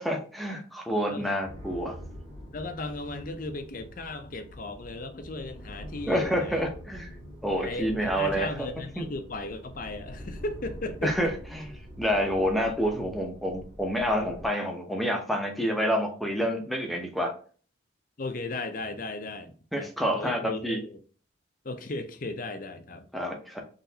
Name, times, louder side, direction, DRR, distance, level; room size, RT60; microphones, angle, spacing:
voice 1, 0.0-1.9 6.1-7.1 7.4-8.7 9.0-9.1 11.0-11.7 12.0-17.3 19.7-20.8 23.1-23.6, equal, ahead, 0.7 m, -28 dB
sound 1, 1.4-14.5, equal, 40° right, 1.9 m, -44 dB
voice 2, 2.5-6.7 7.5-11.3 18.2-21.0 21.6-23.1, left 2 dB, 45° left, 0.6 m, -36 dB
4.0 x 3.1 x 2.8 m
head